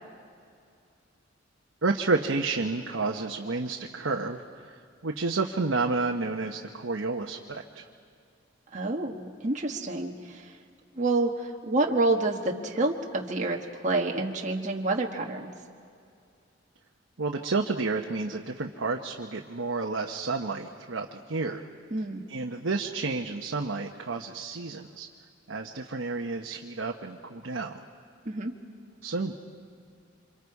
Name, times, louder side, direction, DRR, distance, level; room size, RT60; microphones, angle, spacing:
voice 1, 1.8-4.8 5.0-7.6 17.2-21.6 22.3-25.1 25.5-27.8 29.0-29.3, right 3 dB, 75° right, 2 dB, 1.0 m, -30 dB
voice 2, 8.7-10.5 11.0-13.6 13.8-15.5 21.9-22.2 28.2-28.5, right 2 dB, 40° right, 1 dB, 1.4 m, -28 dB
28.0 x 26.0 x 4.8 m, 2.4 s
head